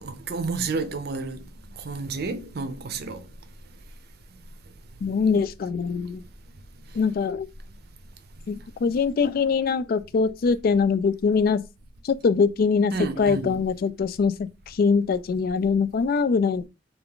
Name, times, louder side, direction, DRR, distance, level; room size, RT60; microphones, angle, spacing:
voice 1, 0.0-1.5 1.7-3.3 12.9-13.7, right 4 dB, 60° right, 0.5 m, -30 dB
voice 2, 5.0-6.2 7.0-7.5 8.5-11.6 12.0-16.7, left 5 dB, 55° left, 0.3 m, -23 dB
3.4 x 2.4 x 3.6 m
head